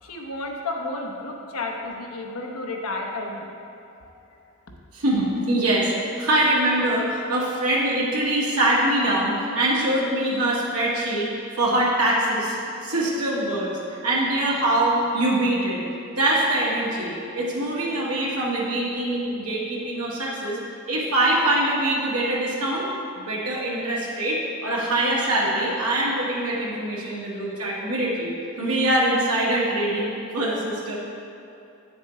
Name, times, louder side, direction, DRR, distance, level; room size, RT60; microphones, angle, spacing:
voice 1, 0.0-3.5 4.0-4.1, left 2 dB, 85° left, 1 dB, 0.9 m, -32 dB
voice 2, 4.9-11.3 11.6-12.6 12.8-13.7 14.0-15.8 16.2-20.6 20.9-22.9 23.1-31.0, right 1 dB, 80° right, -5 dB, 1.7 m, -23 dB
8.6 x 7.2 x 3.2 m, 2.6 s
head